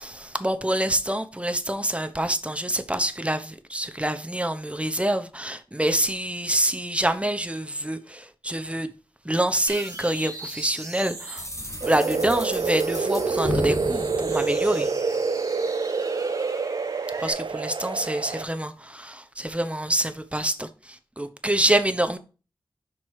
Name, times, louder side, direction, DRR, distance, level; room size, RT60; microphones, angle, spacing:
voice 1, 0.0-8.9 9.2-11.5 11.8-14.9 17.2-22.2, right 1 dB, 15° right, 0.9 m, -26 dB
sound 1, 9.7-17.3, right 2 dB, 35° right, 1.4 m, -40 dB
sound 2, 11.4-15.2, left 2 dB, 35° left, 1.3 m, -35 dB
sound 3, 11.8-18.4, right 4 dB, 60° right, 0.5 m, -27 dB
6.1 x 4.4 x 4.7 m
wide cardioid pair, 55°, 9 cm